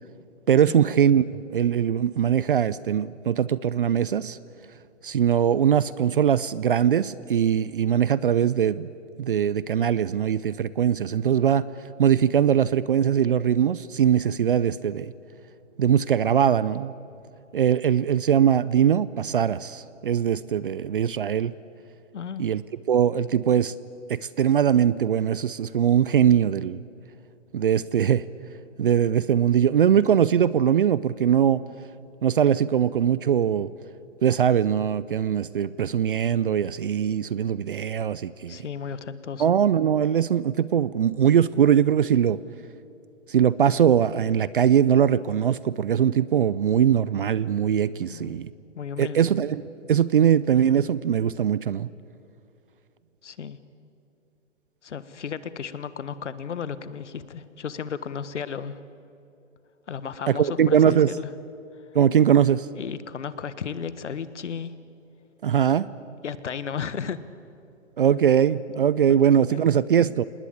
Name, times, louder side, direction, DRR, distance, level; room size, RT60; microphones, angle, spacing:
voice 1, 0.5-1.2 1.5-4.4 5.0-8.9 9.2-11.7 12.0-15.1 15.8-16.9 17.5-21.5 22.4-22.6 22.9-23.7 24.1-26.8 27.5-28.2 28.8-31.6 32.2-33.7 34.2-38.6 39.4-42.4 43.3-48.5 49.0-51.9 60.3-61.1 61.9-62.7 65.4-65.9 68.0-70.2, right 9 dB, 45° right, 19 dB, 0.6 m, -21 dB
voice 2, 22.1-22.5 38.5-39.5 48.1-48.4 48.7-49.3 53.2-53.6 54.8-58.8 59.9-61.3 62.7-64.7 66.2-67.2 69.5-69.6, left 7 dB, 65° left, 14 dB, 1.5 m, -34 dB
27.0 x 19.5 x 8.7 m, 2.7 s
hypercardioid pair, 145°, 38 cm